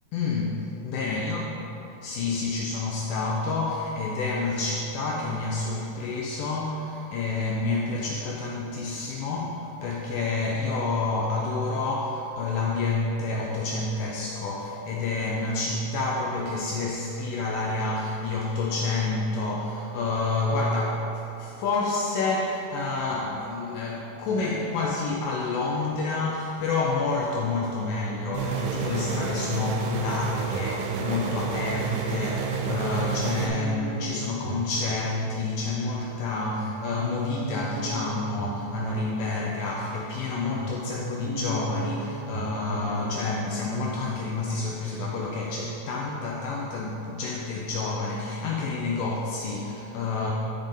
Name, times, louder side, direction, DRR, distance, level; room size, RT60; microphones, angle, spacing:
voice 1, 0.1-1.4 2.0-50.3, left 3 dB, 85° left, -2 dB, 1.9 m, -29 dB
sound 1, 28.3-33.5, right 6 dB, 80° right, 2.3 m, -30 dB
sound 2, 30.5-46.2 46.6-46.7, right 2 dB, 65° right, 2.3 m, -37 dB
10.5 x 5.2 x 3.7 m, 3.0 s
omnidirectional pair, 4.5 m